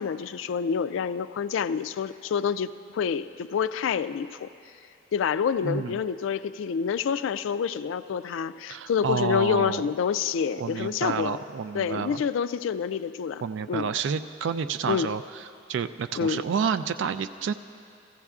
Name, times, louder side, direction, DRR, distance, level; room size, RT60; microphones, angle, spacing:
voice 1, 0.0-4.5 5.1-11.4 11.7-13.4 13.7-13.9 14.9-15.1 16.2-16.4, left 7 dB, 80° left, 12 dB, 0.3 m, -27 dB
voice 2, 5.6-6.0 8.7-9.8 10.6-12.2 13.4-17.5, right 6 dB, 70° right, 10 dB, 0.3 m, -29 dB
16.0 x 14.5 x 2.4 m, 2.5 s
head